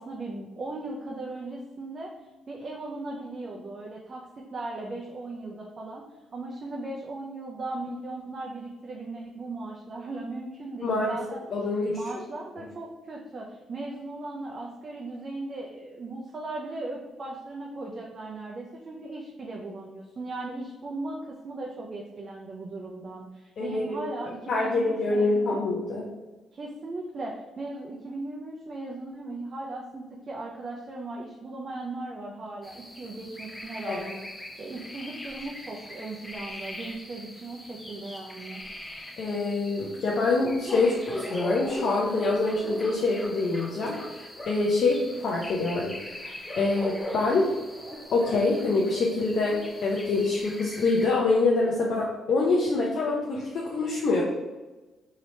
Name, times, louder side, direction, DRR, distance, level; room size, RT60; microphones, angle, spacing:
voice 1, 0.0-2.1 2.5-6.0 6.3-11.4 11.9-25.6 26.5-34.3 34.6-38.6, right 2 dB, 40° right, -2 dB, 0.4 m, -37 dB
voice 2, 10.8-11.2 11.5-12.0 23.6-24.0 24.5-26.1 33.9-34.0 39.2-47.5 48.1-54.2, left 3 dB, 60° left, -3 dB, 0.5 m, -25 dB
sound 1, 32.6-51.1, left 1 dB, 10° left, 0.5 m, -40 dB
2.8 x 2.8 x 3.1 m, 1.2 s
cardioid pair, 90°, 0 cm